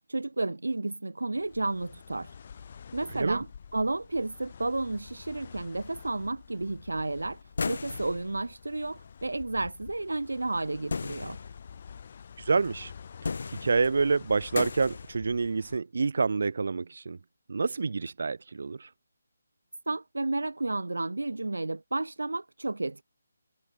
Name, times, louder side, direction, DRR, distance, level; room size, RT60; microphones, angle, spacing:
voice 1, 0.1-2.3 2.9-3.5 3.7-7.4 7.7-11.4 19.9-23.0, right 2 dB, 80° right, 0.9 m, -32 dB
sound 1, 1.4-15.8, left 7 dB, 40° left, 3.9 m, -48 dB
voice 2, 3.1-3.4 12.4-12.9 13.2-13.3 13.6-17.2 17.5-18.9, right 4 dB, 60° right, 2.6 m, -27 dB
sound 2, 7.6-8.3 10.9-11.6 12.6-12.7 13.2-14.0 14.6-15.2, left 4 dB, 60° left, 2.5 m, -34 dB
figure-of-eight pair, 155°, 0 cm